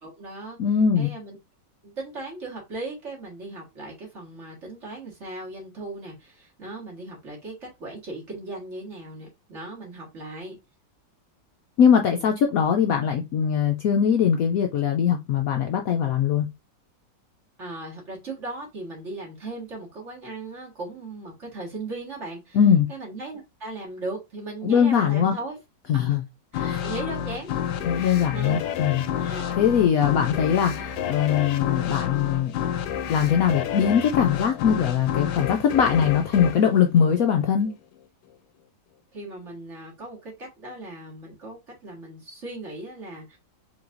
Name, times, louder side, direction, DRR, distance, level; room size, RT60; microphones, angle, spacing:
voice 1, 0.0-0.6 1.0-1.4 1.8-10.6 17.6-22.6 22.9-25.6 25.9-26.2 26.5-27.5 27.9-28.6 29.3-29.6 39.1-43.4, right 2 dB, 40° right, 1.9 m, -37 dB
voice 2, 0.6-1.1 11.8-16.5 22.5-22.9 24.6-25.3 25.9-26.2 26.6-26.8 27.8-32.5 33.1-37.7, left 8 dB, 70° left, 0.9 m, -21 dB
sound 1, 26.5-37.7, left 9 dB, 85° left, 1.3 m, -30 dB
4.6 x 3.3 x 2.5 m
omnidirectional pair, 1.9 m